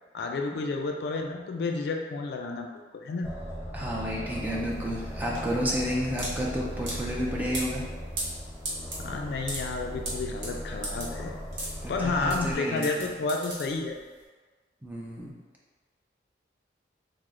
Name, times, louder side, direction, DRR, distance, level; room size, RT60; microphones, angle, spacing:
voice 1, 0.1-3.3 9.0-11.3 11.9-14.0, left 3 dB, 60° left, 2 dB, 0.3 m, -31 dB
Aircraft, 3.2-12.6, equal, 30° right, 1.1 m, -38 dB
voice 2, 3.7-7.8 11.8-13.1 14.8-15.3, equal, 10° right, -4 dB, 0.4 m, -31 dB
sound 1, 4.3-14.2, right 1 dB, 85° right, 0.9 m, -38 dB
3.1 x 2.0 x 3.6 m, 1.4 s
head